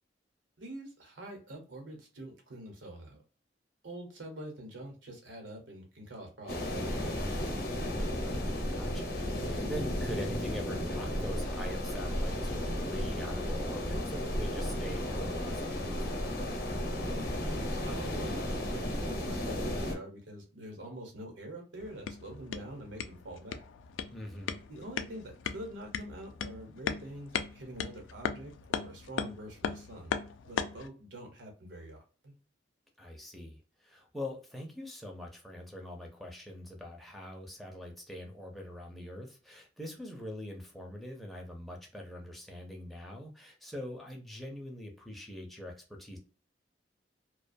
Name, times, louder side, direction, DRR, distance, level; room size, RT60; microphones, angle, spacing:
voice 1, 0.6-3.2 3.8-7.7 17.1-23.6 24.7-30.1 30.4-32.3, right 1 dB, 90° right, 1.0 m, -45 dB
sound 1, 6.5-19.9, left 1 dB, 55° left, 0.6 m, -34 dB
voice 2, 8.3-16.3 24.1-24.6 33.0-45.7 46.0-46.2, left 1 dB, ahead, 0.5 m, -43 dB
sound 2, 21.8-30.9, left 7 dB, 90° left, 0.3 m, -38 dB
2.3 x 2.2 x 2.5 m
head